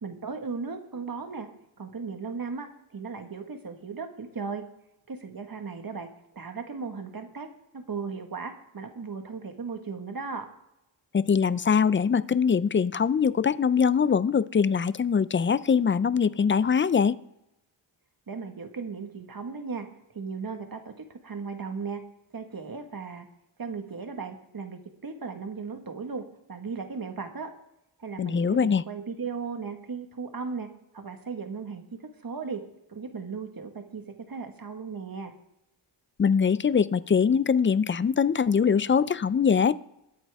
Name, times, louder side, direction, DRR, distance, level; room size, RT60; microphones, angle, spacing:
voice 1, 0.0-1.5 1.8-4.6 5.1-7.5 7.7-10.4 18.3-19.9 20.1-22.0 22.3-23.3 23.6-26.2 26.5-27.5 28.0-30.7 30.9-32.6 32.9-35.3, right 5 dB, 45° right, 6 dB, 1.6 m, -36 dB
voice 2, 11.1-17.2 28.2-28.8 36.2-39.8, left 6 dB, 30° left, 17 dB, 0.3 m, -23 dB
20.5 x 8.5 x 3.5 m, 0.89 s
wide cardioid pair, 90°, 47 cm